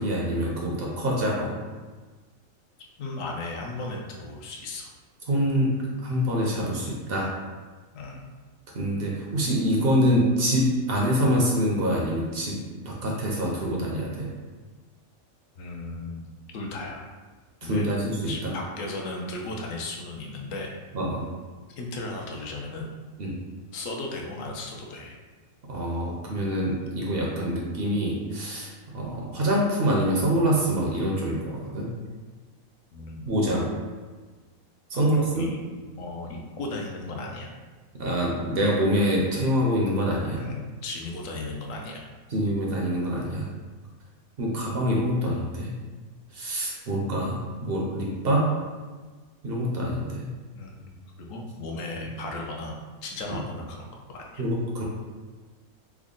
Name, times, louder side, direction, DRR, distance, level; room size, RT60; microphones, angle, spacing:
voice 1, 0.0-1.5 5.3-5.7 6.0-7.3 8.7-14.3 17.6-18.5 20.9-21.3 23.2-23.4 25.7-31.9 33.3-33.7 34.9-35.5 38.0-40.4 42.3-43.5 44.4-45.7 46.3-47.3 47.6-48.5 49.4-50.3 53.3-53.4 54.4-54.8, equal, 60° right, -3 dB, 0.7 m, -25 dB
voice 2, 3.0-4.9 7.9-8.2 15.6-16.2 16.5-17.0 17.6-17.9 18.3-20.7 21.8-22.9 23.3-23.4 23.7-25.2 32.9-33.3 34.9-35.1 35.3-35.6 36.0-37.5 40.4-42.1 50.5-54.5, left 2 dB, 70° left, 0 dB, 1.0 m, -36 dB
3.4 x 2.1 x 3.7 m, 1.4 s
omnidirectional pair, 1.4 m